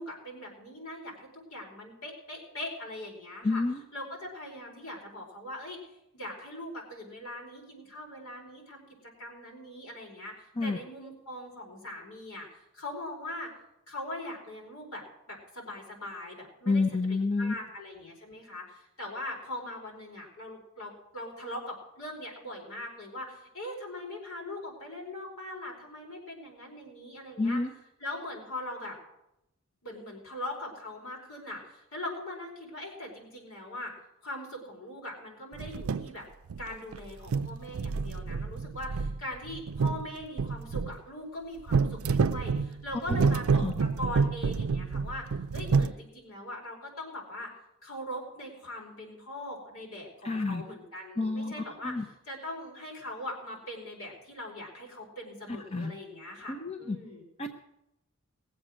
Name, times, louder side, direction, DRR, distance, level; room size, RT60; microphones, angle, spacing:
voice 1, 0.0-3.6 3.9-5.8 6.1-8.8 9.2-13.5 13.9-16.8 17.1-27.6 28.0-29.0 29.8-33.9 34.2-36.3 36.6-45.2 45.5-47.5 47.8-57.3, left 1 dB, 80° left, -1 dB, 4.6 m, -41 dB
voice 2, 3.4-3.8 10.6-10.8 16.7-17.5 27.4-27.7 43.6-43.7 50.2-50.6 51.2-51.5 51.8-52.0 55.7-55.9 56.5-57.0 57.4-57.5, left 3 dB, 30° left, 6 dB, 0.6 m, -28 dB
sound 1, 35.5-36.1 36.5-37.0 37.3-41.0 41.7-45.9, right 5 dB, 75° right, 0.4 m, -28 dB
19.0 x 7.8 x 6.3 m, 0.85 s
head